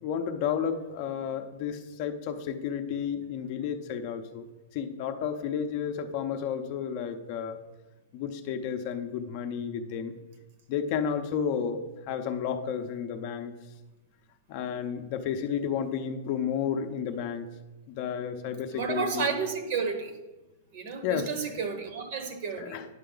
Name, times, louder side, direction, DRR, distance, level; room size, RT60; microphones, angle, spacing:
voice 1, 0.0-4.5 4.7-7.6 8.1-10.1 10.7-13.5 14.5-17.5 17.9-19.3 21.0-21.3 22.6-22.9, left 7 dB, 40° left, 7 dB, 0.6 m, -32 dB
voice 2, 18.7-20.2 20.7-22.8, right 5 dB, 50° right, 8 dB, 1.0 m, -32 dB
9.5 x 5.7 x 3.9 m, 1.1 s
supercardioid pair, 160°, 0 cm